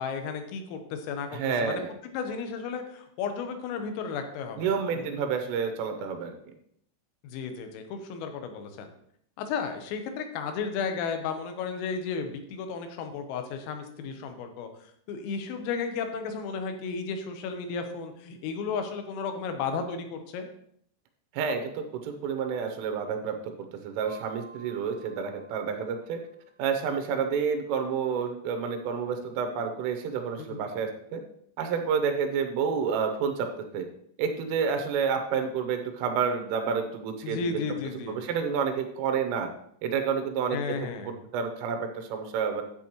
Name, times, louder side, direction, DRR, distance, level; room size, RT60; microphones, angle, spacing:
voice 1, 0.0-1.8 2.1-5.1 7.2-8.9 9.4-14.7 15.1-20.5 30.4-30.6 37.2-38.2 40.5-41.1, left 5 dB, 90° left, 6 dB, 3.7 m, -34 dB
voice 2, 1.3-1.9 4.6-6.4 21.3-23.5 23.8-26.2 26.6-31.2 31.6-33.9 34.2-37.6 38.1-39.5 39.8-40.8 41.0-42.6, right 6 dB, 80° right, 5 dB, 3.5 m, -29 dB
Mallet percussion, 24.0-26.6, right 3 dB, 20° right, 4.0 m, -51 dB
10.5 x 8.5 x 3.0 m, 0.68 s
omnidirectional pair, 5.8 m